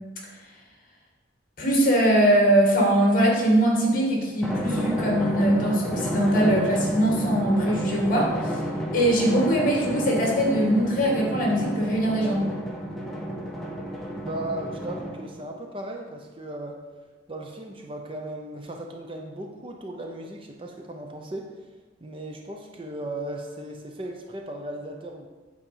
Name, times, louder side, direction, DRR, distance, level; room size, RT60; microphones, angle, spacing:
voice 1, 1.6-8.5 8.9-12.4, right 1 dB, 45° left, -1 dB, 2.1 m, -21 dB
Drum, 4.4-15.4, equal, ahead, 1.1 m, -31 dB
voice 2, 14.1-16.8 17.3-21.5 22.0-25.3, right 1 dB, 30° right, 2 dB, 0.7 m, -36 dB
8.8 x 4.2 x 6.7 m, 1.3 s
head